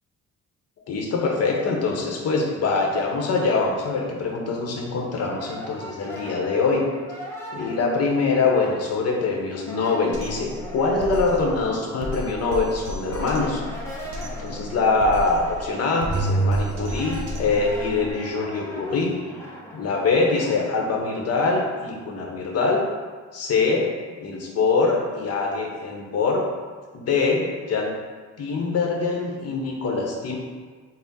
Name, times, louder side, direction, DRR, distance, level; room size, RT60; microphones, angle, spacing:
voice 1, 0.9-6.8 7.5-13.6 14.4-19.2 19.7-22.8 23.3-23.8 24.2-26.4 26.9-27.9 28.4-30.4, left 4 dB, 55° left, 0 dB, 0.7 m, -24 dB
Brass instrument, 4.8-9.2 9.5-21.6, equal, 10° left, 0.8 m, -40 dB
Drum kit, 10.1-18.1, equal, 85° right, 0.6 m, -34 dB
Bowed string instrument, 16.1-18.5, right 2 dB, 20° right, 1.1 m, -27 dB
3.5 x 2.0 x 4.0 m, 1.5 s
cardioid pair, 90°, 30 cm